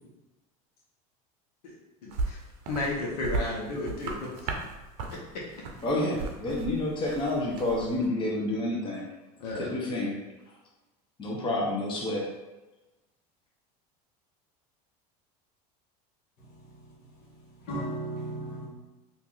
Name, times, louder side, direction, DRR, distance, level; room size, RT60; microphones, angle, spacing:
voice 1, 2.0-2.4 2.7-4.3 9.4-9.7, left 2 dB, 90° left, 0.9 m, -33 dB
sound 1, 2.1-8.1, right 3 dB, 75° right, 0.6 m, -36 dB
voice 2, 5.8-9.0 9.6-10.2 11.2-12.2, left 1 dB, 25° left, 0.8 m, -29 dB
voice 3, 16.4-18.7, right 1 dB, 55° left, 1.4 m, -38 dB
2.8 x 2.5 x 3.8 m
supercardioid pair, 110°, 20 cm